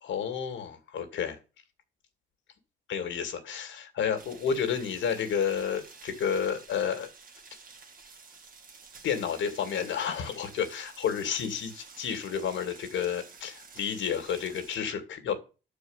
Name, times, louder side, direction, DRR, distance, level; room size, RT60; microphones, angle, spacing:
voice 1, 0.0-1.4 2.9-7.1 9.0-15.4, left 7 dB, 75° left, 7 dB, 2.2 m, -31 dB
sound 1, 4.2-14.8, right 4 dB, 45° right, 2.1 m, -51 dB
11.5 x 4.8 x 8.0 m, 0.33 s
cardioid pair, 90°, 20 cm